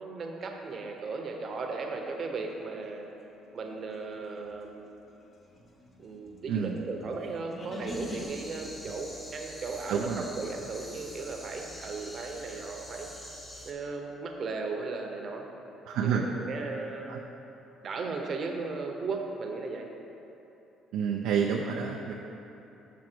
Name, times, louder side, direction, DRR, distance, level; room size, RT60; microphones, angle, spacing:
voice 1, 0.0-3.1 3.5-5.1 6.0-13.1 13.6-15.5 16.0-17.3 17.8-19.9, right 4 dB, 50° right, 2 dB, 0.9 m, -36 dB
sound 1, 4.1-8.2, left 1 dB, 40° left, 0.9 m, -44 dB
voice 2, 6.5-6.8 9.9-10.3 15.9-16.2 17.1-17.2 20.9-22.1, right 7 dB, 75° right, 1 dB, 0.4 m, -29 dB
sound 2, 7.9-13.7, equal, 10° left, 1.1 m, -45 dB
6.2 x 5.9 x 4.5 m, 3.0 s
supercardioid pair, 80°, 0 cm